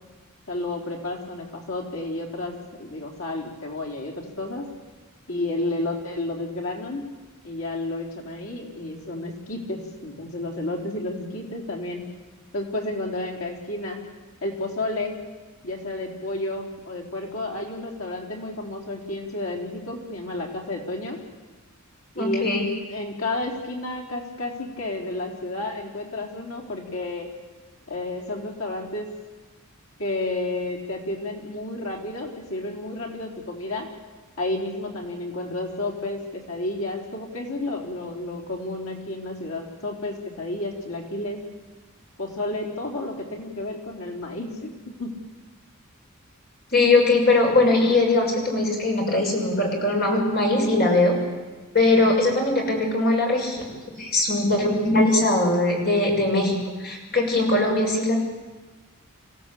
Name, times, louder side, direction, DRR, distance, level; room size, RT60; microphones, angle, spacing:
voice 1, 0.5-4.7 5.3-7.0 7.4-12.0 12.5-14.0 14.4-15.1 15.6-21.2 22.2-22.5 22.9-27.3 27.9-29.1 30.0-33.9 34.4-41.4 42.2-45.1, left 2 dB, 75° left, 1 dB, 4.1 m, -31 dB
voice 2, 22.1-22.7 46.7-51.1 51.7-53.6 54.0-58.2, left 2 dB, 45° left, 0 dB, 6.6 m, -21 dB
27.0 x 17.0 x 8.6 m, 1.3 s
head